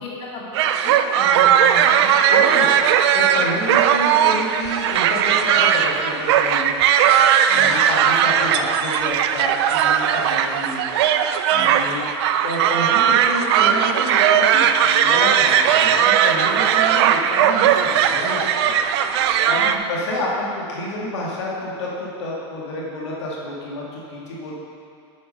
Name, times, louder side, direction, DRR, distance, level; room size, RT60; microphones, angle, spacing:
voice 1, 0.0-2.1 7.5-7.8 11.5-11.7 19.6-19.8, left 3 dB, 40° left, -5 dB, 2.1 m, -35 dB
sound 1, 0.5-19.8, right 9 dB, 70° right, 0.5 m, -18 dB
voice 2, 2.2-2.7 3.1-6.7 7.5-10.8 11.5-12.0 12.4-18.7 19.4-24.5, left 1 dB, 90° left, -5 dB, 2.1 m, -29 dB
8.4 x 6.0 x 5.4 m, 2.5 s
supercardioid pair, 135°, 14 cm